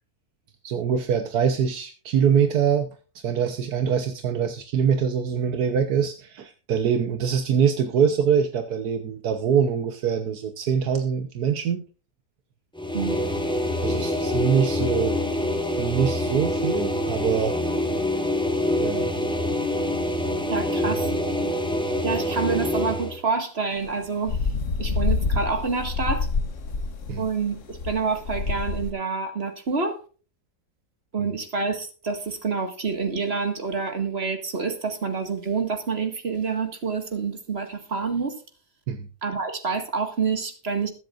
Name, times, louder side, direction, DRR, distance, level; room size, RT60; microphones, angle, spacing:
voice 1, 0.6-11.8 13.8-15.2 15.8-17.6 18.8-19.1 27.1-27.2 38.9-39.1, right 7 dB, 80° right, 1.6 m, -24 dB
sound 1, 12.7-23.2, left 1 dB, 5° left, 1.6 m, -25 dB
voice 2, 20.5-21.1 22.0-24.4 24.8-26.3 27.2-30.0 31.1-38.4 39.2-40.9, right 5 dB, 40° right, 2.1 m, -27 dB
sound 2, 23.8-28.9, left 4 dB, 55° left, 1.4 m, -27 dB
21.5 x 7.8 x 2.5 m
omnidirectional pair, 1.6 m